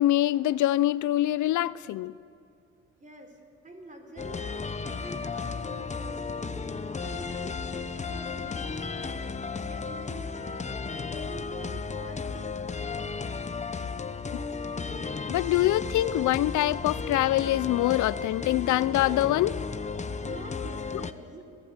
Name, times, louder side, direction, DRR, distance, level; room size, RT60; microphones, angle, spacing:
voice 1, 0.0-2.1 14.3-14.4 15.3-19.6, left 14 dB, 75° left, 18 dB, 0.5 m, -24 dB
voice 2, 3.0-3.4 3.6-4.5 4.8-6.5 7.0-9.3 9.7-13.3 20.2-21.5, right 2 dB, 25° right, 3 dB, 4.1 m, -46 dB
sound 1, 4.2-21.1, left 4 dB, 25° left, 0.9 m, -34 dB
23.0 x 15.5 x 8.0 m, 2.4 s
cardioid pair, 90°, 30 cm